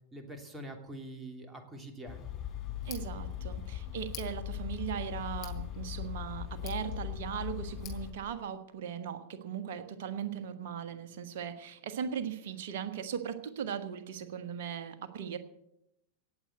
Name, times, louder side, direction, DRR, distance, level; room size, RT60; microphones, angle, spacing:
voice 1, 0.1-2.3, right 1 dB, 15° right, 5 dB, 2.8 m, -45 dB
Tick, 2.1-8.1, left 11 dB, 35° left, 3.7 m, -39 dB
voice 2, 2.8-15.4, right 8 dB, 55° right, 9 dB, 1.4 m, -38 dB
17.5 x 8.0 x 7.9 m, 0.82 s
figure-of-eight pair, 90°, 0 cm